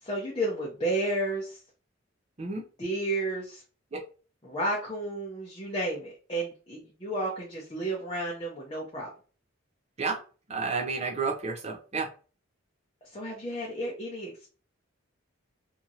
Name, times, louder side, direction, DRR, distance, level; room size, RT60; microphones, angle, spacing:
voice 1, 0.0-1.6 2.8-3.6 4.4-9.1 13.0-14.5, right 1 dB, 25° left, -4 dB, 0.6 m, -32 dB
voice 2, 10.5-12.1, right 4 dB, 30° right, 2 dB, 0.5 m, -30 dB
2.8 x 2.5 x 2.7 m, 0.36 s
head